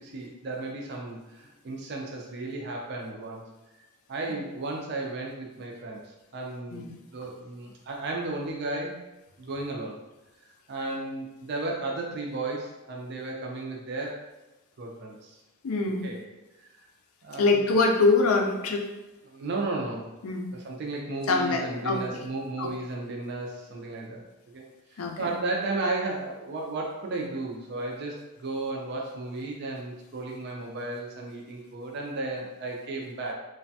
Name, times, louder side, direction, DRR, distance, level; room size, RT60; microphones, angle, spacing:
voice 1, 0.0-3.4 3.8-6.0 6.3-9.0 9.4-10.0 10.7-14.2 14.8-15.4 16.0-16.2 17.2-17.7 19.2-20.1 20.5-24.2 24.5-24.7 24.9-33.3, right 2 dB, 50° right, 0 dB, 0.4 m, -34 dB
voice 2, 15.6-16.1 17.4-18.9 20.2-20.5 21.3-22.0 22.6-22.7 25.0-25.3, left 3 dB, 75° left, 2 dB, 0.4 m, -24 dB
3.2 x 2.2 x 2.6 m, 1.1 s
head